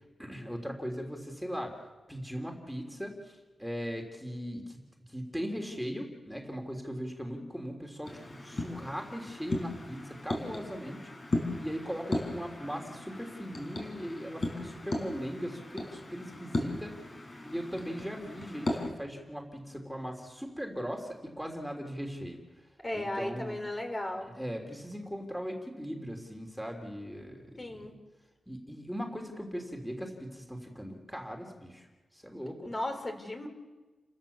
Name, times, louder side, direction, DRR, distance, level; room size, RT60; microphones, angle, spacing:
voice 1, 0.2-1.8 2.1-4.8 5.1-16.9 17.4-22.4 22.9-23.6 24.4-28.0 28.5-31.9 32.1-32.6, equal, ahead, 2 dB, 3.3 m, -39 dB
sound 1, 8.0-18.9, left 2 dB, 45° left, 6.0 m, -37 dB
voice 2, 22.8-24.3 27.6-27.9 32.6-33.5, left 1 dB, 30° left, 4 dB, 3.7 m, -35 dB
30.0 x 16.0 x 7.1 m, 1.2 s
wide cardioid pair, 90°, 0 cm